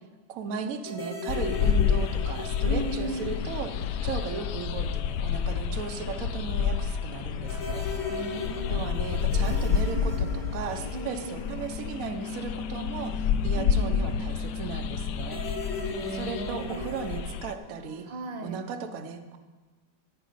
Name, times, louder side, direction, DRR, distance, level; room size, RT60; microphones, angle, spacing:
voice 1, 0.3-7.9 8.7-15.4 16.1-18.1 18.4-19.4, right 5 dB, 55° right, 6 dB, 1.2 m, -36 dB
sound 1, 0.7-18.1, left 5 dB, 15° left, 1.4 m, -44 dB
sound 2, 0.8-4.6 4.9-5.0 7.4-12.9 15.2-17.2, left 3 dB, 40° left, 1.9 m, -39 dB
sound 3, 1.3-17.5, left 7 dB, 75° left, 1.1 m, -29 dB
voice 2, 2.6-3.4 8.1-8.9 10.9-11.4 13.6-14.2 15.8-16.9 18.0-18.6, right 2 dB, 90° right, 6 dB, 1.8 m, -37 dB
14.5 x 5.2 x 9.2 m, 1.3 s
omnidirectional pair, 1.9 m